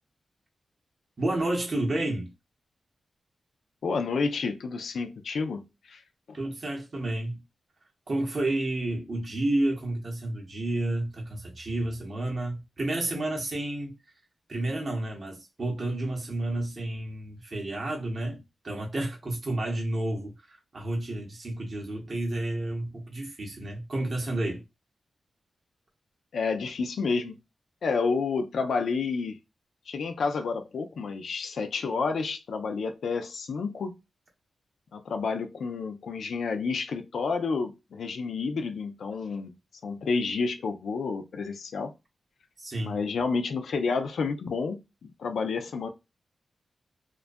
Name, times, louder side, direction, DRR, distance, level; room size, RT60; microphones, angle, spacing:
voice 1, 1.2-2.3 6.3-7.4 8.1-13.9 14.5-20.3 20.7-24.6 42.6-43.0, right 1 dB, 45° right, 0.8 m, -30 dB
voice 2, 3.8-6.0 26.3-27.4 27.8-29.4 29.9-33.9 34.9-39.5 39.8-41.9 42.8-45.9, left 4 dB, 80° left, 0.4 m, -30 dB
2.3 x 2.2 x 2.5 m
wide cardioid pair, 115°, 0 cm